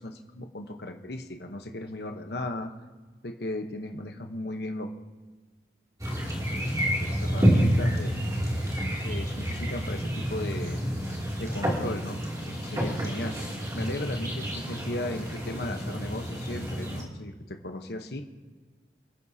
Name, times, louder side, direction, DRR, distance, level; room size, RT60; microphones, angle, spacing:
voice 1, 0.0-2.7 3.2-4.9 6.5-6.7 7.0-8.1 9.0-10.8 11.4-13.4 13.7-18.2, left 1 dB, 65° left, 4 dB, 1.0 m, -36 dB
sound 1, 6.0-17.0, equal, 20° right, 2.7 m, -29 dB
26.5 x 11.0 x 2.8 m, 1.3 s
head